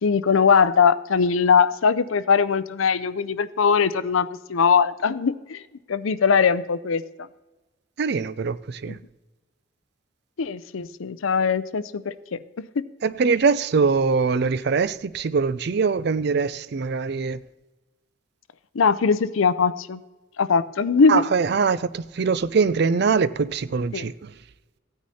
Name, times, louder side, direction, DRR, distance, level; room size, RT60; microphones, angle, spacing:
voice 1, 0.0-5.6 5.9-7.0 8.9-9.0 10.4-12.4 18.7-20.0 20.4-21.2 23.9-24.1, left 5 dB, 80° left, 0.5 m, -21 dB
voice 2, 8.0-9.0 13.0-17.4 21.1-24.3, right 5 dB, 55° right, 0.4 m, -23 dB
15.5 x 9.4 x 4.2 m
head